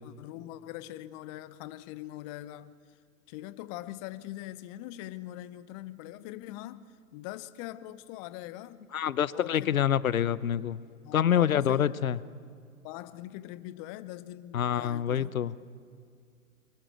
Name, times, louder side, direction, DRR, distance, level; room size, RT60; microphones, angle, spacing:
voice 1, 0.0-2.7 3.3-8.8 9.3-9.8 11.0-12.1 12.8-15.7, left 15 dB, 25° left, 0.6 m, -42 dB
voice 2, 8.9-10.8 11.1-12.2 14.5-15.5, left 9 dB, 75° left, 0.8 m, -26 dB
23.5 x 19.0 x 8.1 m
figure-of-eight pair, 115°, 41 cm